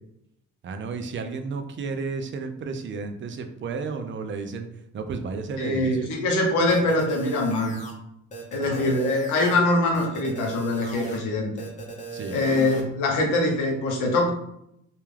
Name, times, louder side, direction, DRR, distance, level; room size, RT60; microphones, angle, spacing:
voice 1, 0.6-4.7 4.9-6.1 8.6-8.9 12.1-12.4, right 4 dB, 40° right, 7 dB, 0.4 m, -32 dB
voice 2, 5.6-7.7 8.5-11.5 12.3-14.3, left 2 dB, 90° left, 1 dB, 0.7 m, -23 dB
sound 1, 6.7-7.9 8.3-9.5 9.9-11.2 11.6-12.8, right 3 dB, 25° left, 0.7 m, -37 dB
2.3 x 2.2 x 3.2 m, 0.77 s
cardioid pair, 90°, 30 cm